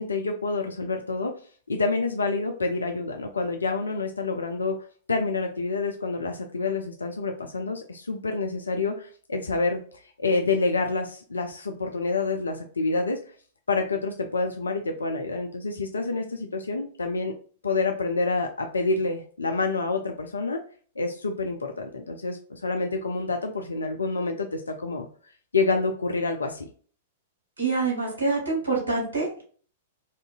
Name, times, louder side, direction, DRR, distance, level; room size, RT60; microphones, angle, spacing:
voice 1, 0.0-1.4 1.7-4.8 5.1-13.2 13.7-17.3 17.6-20.6 21.0-25.1 25.5-26.6, left 3 dB, 75° left, 4 dB, 0.4 m, -28 dB
voice 2, 27.6-29.4, right 3 dB, 70° right, -3 dB, 1.4 m, -26 dB
3.5 x 2.6 x 2.4 m, 0.44 s
figure-of-eight pair, 100°, 0 cm